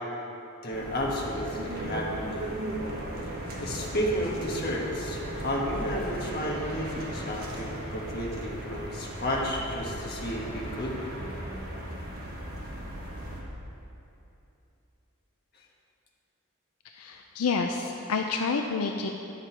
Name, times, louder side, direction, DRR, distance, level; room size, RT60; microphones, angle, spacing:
voice 1, 0.6-2.5 3.6-11.0, equal, 45° left, -2 dB, 1.3 m, -32 dB
sound 1, 0.7-13.4, right 1 dB, 45° right, 1.3 m, -37 dB
voice 2, 16.9-19.1, left 4 dB, 80° left, 3 dB, 0.5 m, -29 dB
9.9 x 6.6 x 4.5 m, 2.9 s
head